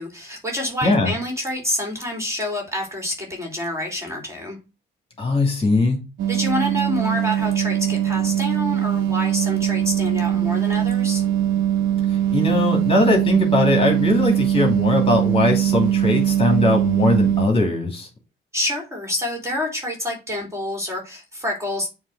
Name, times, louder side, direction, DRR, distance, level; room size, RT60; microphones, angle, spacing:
voice 1, 0.0-4.6 6.3-11.2 18.5-21.9, left 1 dB, 15° right, 1 dB, 3.0 m, -27 dB
voice 2, 0.8-1.1 5.2-6.0 12.1-18.1, left 2 dB, 30° left, 1 dB, 2.9 m, -20 dB
sound 1, 6.2-17.5, right 11 dB, 75° right, 0.9 m, -21 dB
7.3 x 3.4 x 6.1 m, 0.29 s
cardioid pair, 90°, 20 cm